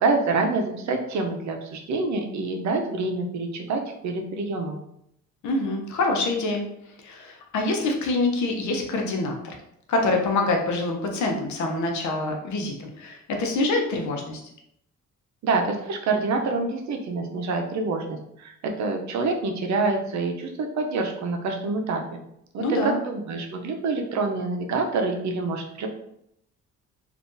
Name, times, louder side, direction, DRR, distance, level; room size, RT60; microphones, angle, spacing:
voice 1, 0.0-4.8 15.4-22.2 22.5-25.9, right 3 dB, 65° right, 3 dB, 0.7 m, -26 dB
voice 2, 5.4-6.6 7.0-9.6 9.9-14.4 22.6-23.0, left 2 dB, 70° left, 2 dB, 0.8 m, -25 dB
3.6 x 2.5 x 2.6 m, 0.75 s
cardioid pair, 90°, 30 cm